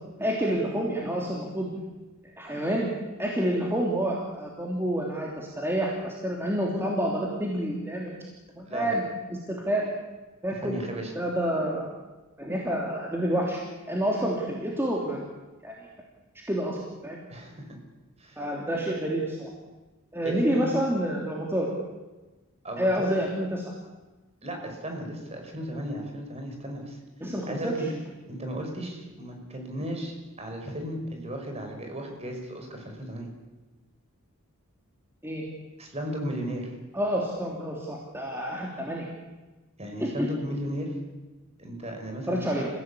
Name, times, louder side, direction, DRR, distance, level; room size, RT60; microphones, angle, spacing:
voice 1, 0.2-1.7 2.4-2.9 3.2-8.1 8.6-9.0 9.5-9.9 10.4-10.8 11.1-11.9 12.4-13.6 13.9-15.2 15.6-15.7 16.5-16.8 17.0-17.2 18.4-19.5 20.1-21.7 22.8-23.7 27.2-27.7 35.2-35.4 36.9-39.1 40.0-40.3 42.3-42.7, equal, 10° right, -2 dB, 3.1 m, -28 dB
voice 2, 10.5-11.1 17.3-17.6 18.2-18.5 20.2-20.8 22.6-23.1 24.4-27.0 27.5-27.9 28.3-33.3 35.8-36.7 39.8-40.9 41.6-42.6, equal, 30° right, 3 dB, 5.4 m, -35 dB
29.5 x 16.5 x 8.6 m, 1.2 s
head